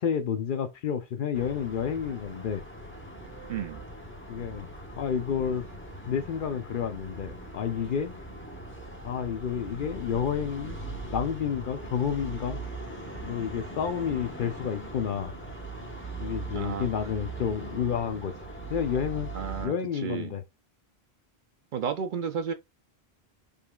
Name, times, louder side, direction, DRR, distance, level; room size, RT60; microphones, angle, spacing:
voice 1, 0.0-2.6 4.3-4.7 5.0-5.7 6.0-8.2 9.0-12.6 13.2-15.3 16.2-18.4 18.7-19.3 19.6-20.4, left 8 dB, 60° left, 0.7 m, -30 dB
sound 1, 1.3-19.7, right 2 dB, 10° left, 0.9 m, -40 dB
voice 2, 3.5-3.8 16.5-16.9 19.3-20.3 21.7-22.5, right 7 dB, 60° right, 0.6 m, -32 dB
5.2 x 3.0 x 2.3 m
omnidirectional pair, 1.1 m